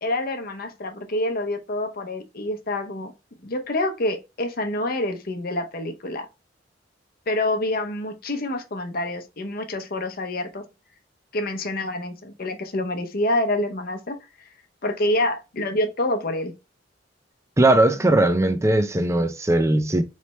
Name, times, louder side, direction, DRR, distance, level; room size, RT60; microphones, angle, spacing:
voice 1, 0.0-3.1 3.4-6.3 7.3-10.7 11.3-14.5 14.8-16.5, left 1 dB, 50° left, 0.7 m, -27 dB
voice 2, 17.6-20.0, right 1 dB, 15° right, 0.5 m, -19 dB
4.2 x 3.2 x 3.1 m
head